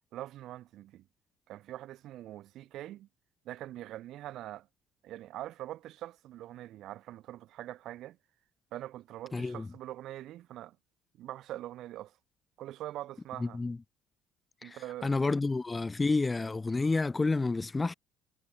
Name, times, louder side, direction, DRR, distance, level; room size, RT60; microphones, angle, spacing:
voice 1, 0.1-1.1 1.5-3.1 3.4-4.7 5.0-8.2 8.7-10.8 11.2-12.2 12.6-13.6 14.6-15.3, right 14 dB, 65° right, 3.4 m, -43 dB
voice 2, 9.3-9.7 13.4-13.8 14.6-14.8 15.0-17.9, left 3 dB, 20° left, 0.7 m, -29 dB
hypercardioid pair, 70°, 0 cm